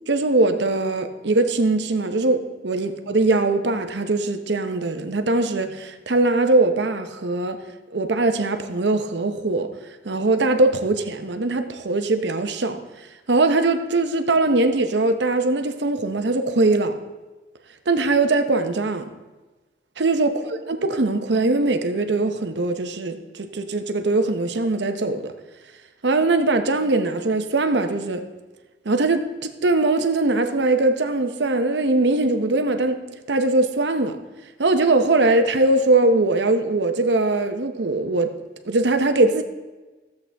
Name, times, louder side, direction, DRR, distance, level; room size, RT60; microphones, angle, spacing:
voice 1, 0.1-7.6 7.9-9.7 10.0-12.8 13.3-17.0 17.9-19.1 20.0-25.3 26.0-28.2 28.8-33.0 33.3-34.2 34.6-38.3 38.7-39.4, right 2 dB, 75° right, 8 dB, 0.8 m, -21 dB
13.5 x 7.9 x 3.4 m, 1.2 s
head